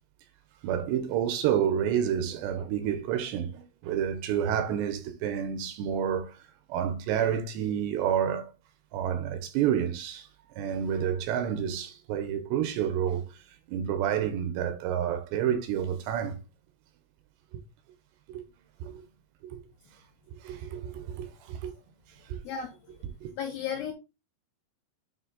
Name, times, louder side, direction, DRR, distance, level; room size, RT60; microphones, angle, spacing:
voice 1, 0.6-6.4 6.7-8.5 8.9-10.3 10.6-13.3 13.7-16.4 18.3-18.4 18.8-19.0 19.5-19.6 20.3-21.7 22.3-22.4 23.2-23.3, right 9 dB, 80° right, 2.7 m, -29 dB
voice 2, 23.4-23.9, left 7 dB, 80° left, 2.2 m, -33 dB
9.3 x 3.3 x 3.8 m
omnidirectional pair, 5.3 m